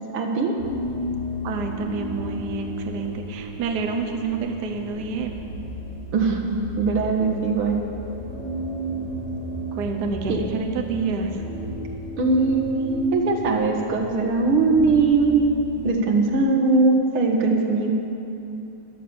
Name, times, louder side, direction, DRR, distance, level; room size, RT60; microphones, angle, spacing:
voice 1, 0.1-0.6 6.1-7.8 10.3-10.4 12.2-15.5 15.8-17.9, right 3 dB, 80° right, 1 dB, 2.3 m, -20 dB
sound 1, 0.6-15.8, equal, 70° left, 4.7 m, -34 dB
voice 2, 1.4-5.4 9.7-11.4, right 4 dB, 55° right, 3 dB, 1.4 m, -28 dB
13.5 x 11.5 x 7.0 m, 2.9 s
omnidirectional pair, 2.3 m